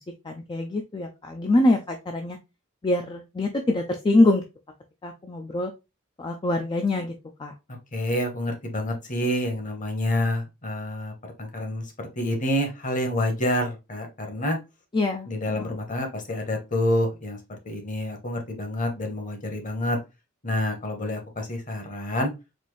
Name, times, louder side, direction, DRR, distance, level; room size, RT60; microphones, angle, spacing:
voice 1, 0.2-2.4 2.8-4.4 5.0-5.7 6.2-7.1 7.4-7.5 14.9-15.3 15.5-15.8, left 2 dB, 20° left, 4 dB, 0.4 m, -24 dB
voice 2, 7.9-11.1 11.4-14.6 15.3-20.0 20.4-22.3, left 1 dB, 40° left, 4 dB, 1.1 m, -28 dB
4.2 x 2.6 x 3.1 m, 0.25 s
head